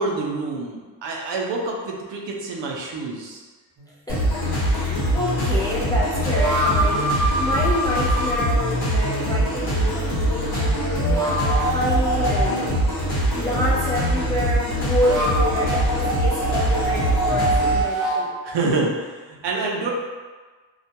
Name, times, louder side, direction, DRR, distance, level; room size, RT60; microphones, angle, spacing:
voice 1, 0.0-3.4 18.4-19.9, right 3 dB, 70° right, -1 dB, 0.6 m, -27 dB
sound 1, 3.8-3.9 5.9-8.4 10.8-12.6 14.6-18.3, right 1 dB, 40° right, 0.8 m, -25 dB
sound 2, 4.1-17.8, equal, 55° left, 1.1 m, -23 dB
voice 2, 4.1-12.8 13.3-18.3, left 1 dB, 10° left, -8 dB, 0.4 m, -28 dB
2.3 x 2.1 x 2.8 m, 1.4 s
wide cardioid pair, 145°, 44 cm